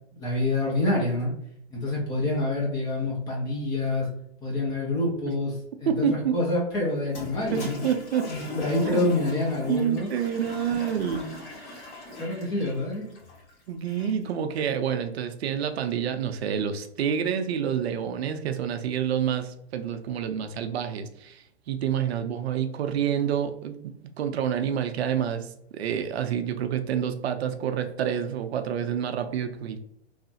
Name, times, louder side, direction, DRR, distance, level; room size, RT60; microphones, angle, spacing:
voice 1, 0.1-1.3 1.7-4.1 4.4-5.5 5.8-7.8 8.3-10.1 12.2-13.2, left 2 dB, 10° left, -3 dB, 0.4 m, -27 dB
voice 2, 5.9-6.4 7.5-8.3 8.9-9.1 9.7-11.3 13.7-29.8, right 8 dB, 70° right, 7 dB, 0.5 m, -28 dB
Toilet flush, 7.0-14.3, left 2 dB, 45° left, 1.3 m, -40 dB
3.1 x 2.0 x 2.7 m, 0.72 s
hypercardioid pair, 130°, 33 cm